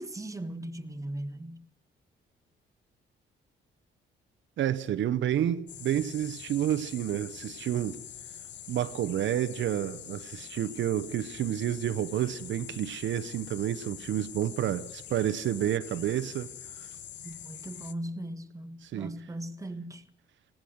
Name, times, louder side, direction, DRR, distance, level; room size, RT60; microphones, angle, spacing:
voice 1, 0.0-1.7 17.2-20.0, right 1 dB, 15° right, 1.6 m, -38 dB
voice 2, 4.6-8.0 8.7-16.5 16.8-16.9 18.8-19.2, right 11 dB, 70° right, 0.9 m, -30 dB
sound 1, 5.7-17.9, left 10 dB, 65° left, 1.0 m, -45 dB
19.5 x 17.0 x 7.9 m
cardioid pair, 90°, 20 cm